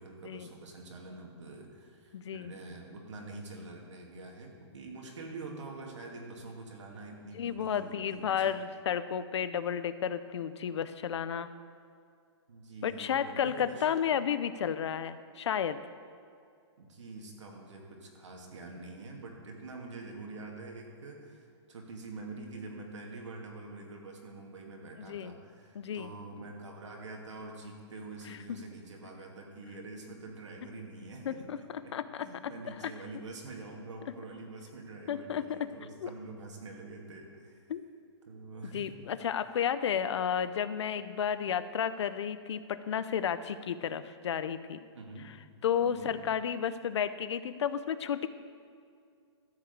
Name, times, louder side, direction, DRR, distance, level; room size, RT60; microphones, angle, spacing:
voice 1, 0.0-8.5 12.5-14.0 16.8-31.9 32.2-37.6 38.3-38.9 44.9-45.3 45.8-46.2, right 3 dB, 85° right, 0 dB, 2.5 m, -46 dB
voice 2, 2.1-2.5 7.3-11.5 12.8-15.8 25.0-25.3 25.7-26.1 31.2-32.5 32.8-32.9 35.1-35.7 36.0-36.1 37.7-37.8 38.7-44.8 45.2-45.3 45.6-48.3, left 8 dB, 70° left, 13 dB, 0.6 m, -32 dB
13.5 x 5.0 x 8.1 m, 2.3 s
hypercardioid pair, 165°, 15 cm